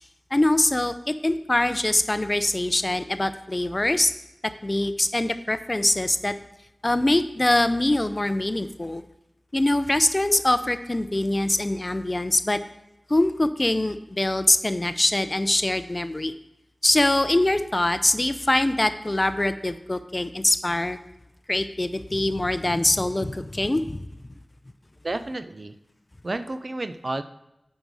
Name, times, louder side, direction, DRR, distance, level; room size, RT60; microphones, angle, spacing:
voice 1, 0.3-4.1 4.6-6.3 6.8-9.0 9.5-12.6 13.1-16.3 16.8-21.0 21.5-24.1, left 1 dB, 35° left, 11 dB, 0.5 m, -23 dB
voice 2, 25.0-25.7 26.2-27.2, right 2 dB, 55° right, 11 dB, 0.5 m, -31 dB
8.0 x 5.5 x 4.7 m, 0.89 s
wide cardioid pair, 45°, 0 cm